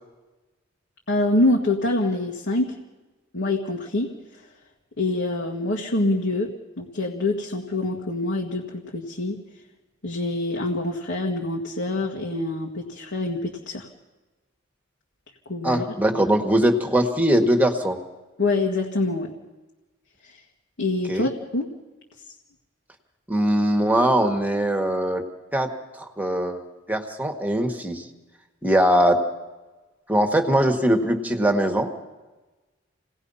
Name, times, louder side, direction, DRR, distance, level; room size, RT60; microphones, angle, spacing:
voice 1, 1.1-2.8 3.3-4.4 5.0-6.5 6.8-9.4 10.0-13.9 15.5-15.9 18.4-19.3 20.2-20.4 20.8-21.7, left 2 dB, 60° left, 0 dB, 1.9 m, -25 dB
voice 2, 15.6-18.0 21.1-21.3 23.3-25.2 25.5-25.7 26.0-28.0 28.6-29.2 30.1-31.9, right 1 dB, 10° right, 5 dB, 1.7 m, -21 dB
28.0 x 18.5 x 5.6 m, 1.1 s
head